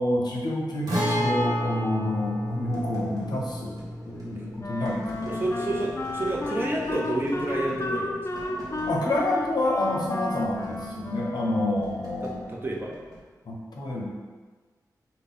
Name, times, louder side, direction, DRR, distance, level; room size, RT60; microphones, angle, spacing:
voice 1, 0.0-3.8 4.0-5.4 8.9-12.4 13.5-14.1, left 1 dB, 80° left, -2 dB, 0.7 m, -28 dB
Guitar, 0.9-8.5 8.8-8.9 10.9-11.0, equal, 75° right, 1.1 m, -32 dB
sound 1, 2.3-13.2, right 1 dB, 55° right, 1.0 m, -45 dB
Wind instrument woodwind instrument, 4.6-12.0, left 2 dB, 40° left, 0.4 m, -33 dB
voice 2, 5.2-8.3 12.2-12.9, right 1 dB, 30° right, -2 dB, 0.7 m, -29 dB
3.9 x 2.1 x 3.5 m, 1.4 s
cardioid pair, 60°, 7 cm